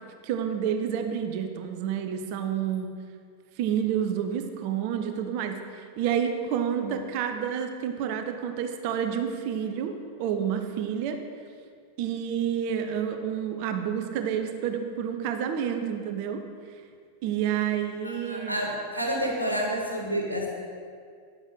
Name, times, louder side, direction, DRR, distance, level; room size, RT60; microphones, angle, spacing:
voice 1, 0.2-2.9 3.6-11.2 12.0-16.4 17.2-18.6, right 8 dB, 45° right, 6 dB, 0.9 m, -29 dB
voice 2, 18.0-20.5, equal, 90° right, 0 dB, 1.7 m, -29 dB
10.5 x 7.7 x 4.8 m, 2.1 s
figure-of-eight pair, 90°, 0 cm